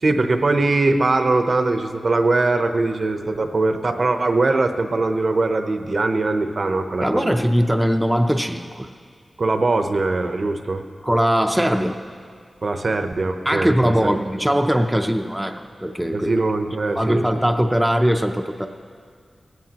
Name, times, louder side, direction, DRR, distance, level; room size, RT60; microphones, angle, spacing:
voice 1, 0.0-7.4 9.4-10.8 12.6-14.2 16.1-17.4, right 3 dB, 55° right, 7 dB, 0.7 m, -21 dB
voice 2, 7.0-8.9 11.0-12.0 13.5-16.3 16.9-18.7, equal, 5° right, 4 dB, 0.5 m, -20 dB
17.5 x 15.5 x 2.9 m, 2.1 s
wide cardioid pair, 100°, 0 cm